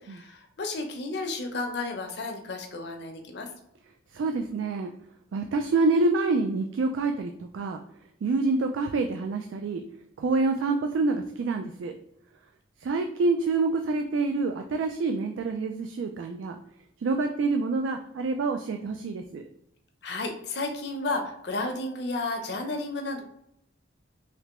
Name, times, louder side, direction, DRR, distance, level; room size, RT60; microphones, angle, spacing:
voice 1, 0.0-3.5 20.0-23.2, left 2 dB, 60° left, 4 dB, 0.6 m, -32 dB
voice 2, 4.1-4.9 5.3-7.8 8.2-9.8 10.2-11.9 12.8-16.6 17.0-19.4, right 3 dB, 80° right, 5 dB, 0.3 m, -27 dB
3.3 x 2.8 x 2.9 m, 0.77 s
head